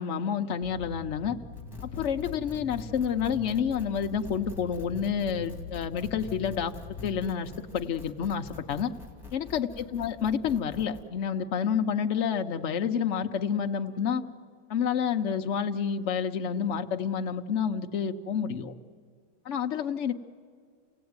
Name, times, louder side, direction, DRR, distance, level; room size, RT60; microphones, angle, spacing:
voice 1, 0.0-1.4 1.8-8.9 9.3-14.2 14.7-18.8 19.5-20.1, left 7 dB, 70° left, 6 dB, 0.6 m, -29 dB
sound 1, 0.6-7.3, left 3 dB, 40° right, 2.4 m, -43 dB
sound 2, 1.5-11.0, left 5 dB, ahead, 2.6 m, -47 dB
28.5 x 17.5 x 9.5 m, 2.1 s
omnidirectional pair, 2.2 m